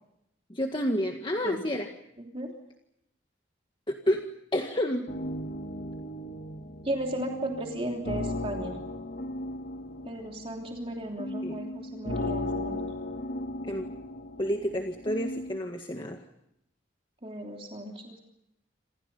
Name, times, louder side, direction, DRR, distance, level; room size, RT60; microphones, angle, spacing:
voice 1, 0.5-1.9 3.9-4.3 4.5-5.1 11.4-11.6 13.7-13.9 14.4-16.2, equal, 25° left, 3 dB, 1.8 m, -29 dB
voice 2, 2.2-2.5 6.8-8.8 10.0-12.8 17.2-18.2, right 1 dB, 30° right, 1 dB, 3.2 m, -35 dB
sound 1, 5.1-15.6, left 1 dB, 50° left, 2.2 m, -36 dB
29.0 x 26.5 x 5.6 m, 0.81 s
head